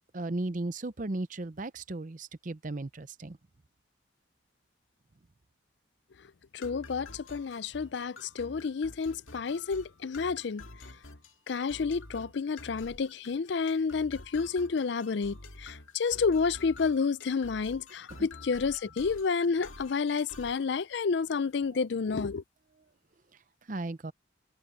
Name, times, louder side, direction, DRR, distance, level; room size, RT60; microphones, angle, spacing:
voice 1, 0.1-3.4 18.2-18.3 23.7-24.1, right 2 dB, 40° right, 0.6 m, -35 dB
voice 2, 6.5-10.6 11.5-22.4, left 5 dB, 60° left, 0.4 m, -30 dB
sound 1, 6.6-20.7, left 3 dB, 90° left, 2.1 m, -49 dB
head